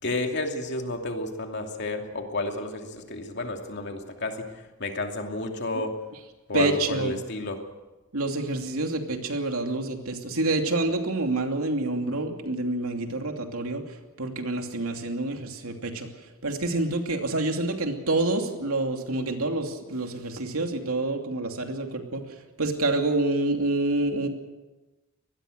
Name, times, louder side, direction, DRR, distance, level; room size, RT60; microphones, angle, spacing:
voice 1, 0.0-4.5 4.8-5.9 6.5-7.6, left 2 dB, 55° left, 3 dB, 2.7 m, -31 dB
voice 2, 6.5-7.2 8.1-13.8 14.2-16.1 16.4-22.2 22.6-24.3, right 2 dB, 90° right, 4 dB, 2.8 m, -27 dB
24.0 x 19.5 x 6.6 m, 1.1 s
head